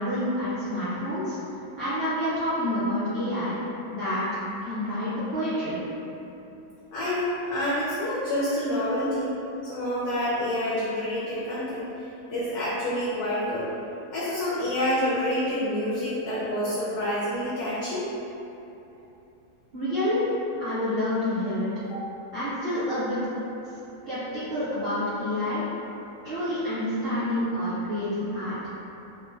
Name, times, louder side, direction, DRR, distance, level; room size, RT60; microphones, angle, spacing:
voice 1, 0.0-1.4 1.8-5.7 19.7-20.2 20.6-21.7 22.3-23.2 24.1-25.6 26.2-28.7, left 1 dB, 55° right, -13 dB, 0.6 m, -28 dB
voice 2, 6.9-9.3 9.7-11.9 12.3-13.7 14.1-18.1 21.8-22.0, left 1 dB, 70° left, -9 dB, 1.1 m, -27 dB
3.5 x 2.1 x 2.6 m, 3.0 s
omnidirectional pair, 1.8 m